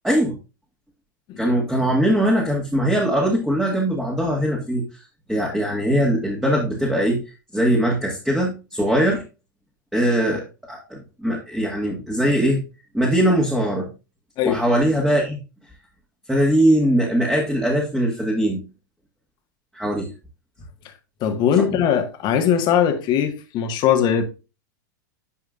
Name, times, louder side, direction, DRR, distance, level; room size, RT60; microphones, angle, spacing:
voice 1, 0.0-0.4 1.4-4.8 5.3-7.2 7.5-9.2 9.9-10.4 10.7-12.6 12.9-13.9 14.4-15.4 16.3-18.6 19.7-20.1 21.6-21.7, right 1 dB, 5° right, 1.9 m, -21 dB
voice 2, 21.2-24.2, left 8 dB, 45° left, 1.7 m, -20 dB
9.9 x 4.9 x 2.5 m
hypercardioid pair, 95°, 11 cm